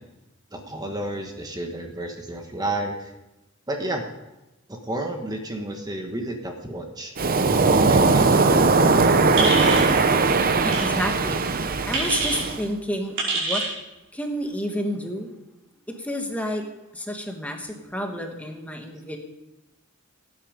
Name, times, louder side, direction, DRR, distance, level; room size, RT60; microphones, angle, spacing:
voice 1, 0.5-3.1 3.7-4.0 4.7-7.1 7.7-9.0, right 1 dB, 20° right, 3 dB, 1.3 m, -31 dB
Waves surf, 7.2-12.6, right 3 dB, 45° right, 0.7 m, -19 dB
sound 1, 9.4-9.9 10.7-10.9 11.9-12.4 13.2-13.7, right 3 dB, 60° right, 4.9 m, -25 dB
voice 2, 10.6-11.4 11.9-13.6 14.1-15.3 15.9-16.6 16.9-19.2, equal, 5° left, 3 dB, 1.4 m, -30 dB
17.5 x 9.2 x 5.1 m, 1.0 s
head